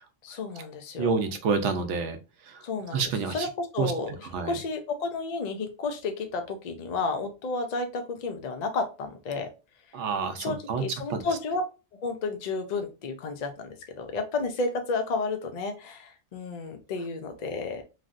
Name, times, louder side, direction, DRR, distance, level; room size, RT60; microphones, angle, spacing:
voice 1, 0.2-1.2 2.6-9.5 10.4-11.6 12.0-17.8, left 3 dB, 60° left, 7 dB, 0.4 m, -32 dB
voice 2, 1.0-2.2 2.5-2.6 2.9-3.5 3.8-3.9 4.3-4.6 9.9-10.8 11.1-11.2, right 5 dB, 85° right, 7 dB, 0.9 m, -28 dB
3.2 x 2.6 x 2.4 m, 0.30 s
omnidirectional pair, 1.2 m